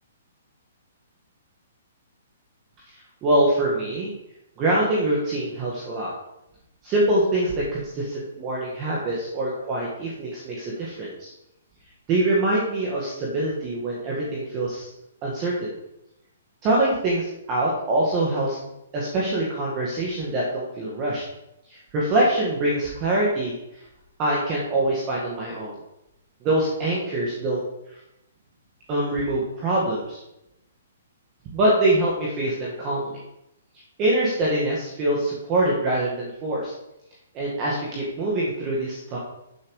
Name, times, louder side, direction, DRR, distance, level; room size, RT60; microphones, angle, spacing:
voice 1, 2.9-4.1 4.6-6.1 6.8-11.3 12.1-14.9 15.2-15.7 16.6-18.6 18.9-21.2 21.7-23.8 24.2-25.7 26.4-27.6 27.9-28.0 28.9-30.2 31.5-33.2 34.0-36.7 37.3-39.2, right 1 dB, 15° right, -4 dB, 1.7 m, -24 dB
12.5 x 7.3 x 4.8 m, 0.87 s
hypercardioid pair, 180°, 0 cm